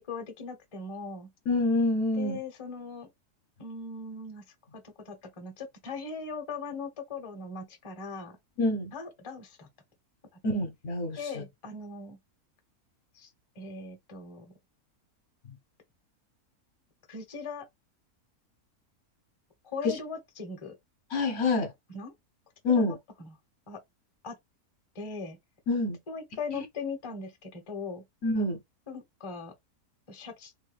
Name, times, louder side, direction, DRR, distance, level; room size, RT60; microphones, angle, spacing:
voice 1, 0.0-1.3 2.1-3.1 3.6-4.4 4.7-8.4 8.9-9.7 11.2-12.2 13.1-13.3 13.6-14.5 17.1-17.7 19.6-20.7 21.9-22.1 22.7-22.8 23.2-23.3 23.7-23.8 24.2-24.4 24.9-25.4 26.1-28.0 28.9-29.5 30.1-30.5, left 4 dB, 30° left, 0.6 m, -39 dB
voice 2, 1.5-2.4 8.6-8.9 10.4-11.2 19.8-19.9 21.1-21.7 22.6-23.0 25.7-26.0 26.5-26.6 28.2-28.6, left 2 dB, 60° left, 1.1 m, -26 dB
3.2 x 2.2 x 3.2 m
omnidirectional pair, 1.6 m